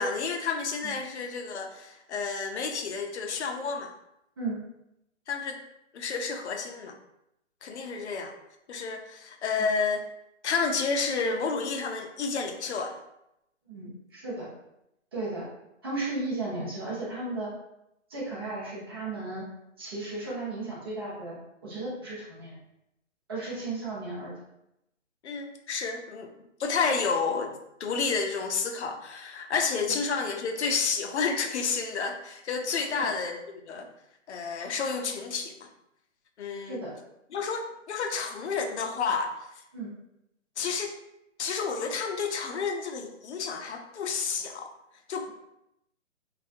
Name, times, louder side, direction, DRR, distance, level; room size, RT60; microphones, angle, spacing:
voice 1, 0.0-3.9 5.3-5.6 5.9-7.0 7.6-8.3 8.7-10.1 10.4-13.0 25.2-26.3 26.6-33.9 34.3-35.7 36.4-36.8 37.3-39.5 40.6-41.0 41.4-44.7 45.1-45.3, left 5 dB, 60° left, 4 dB, 0.5 m, -30 dB
voice 2, 13.7-14.5 15.1-15.5 15.8-17.5 18.1-19.4 19.8-21.4 21.6-22.6 23.3-24.3 29.9-30.0 32.9-33.0 36.6-36.9 39.7-39.9, right 2 dB, 20° right, -8 dB, 0.6 m, -35 dB
2.6 x 2.3 x 2.6 m, 0.83 s
hypercardioid pair, 165°, 38 cm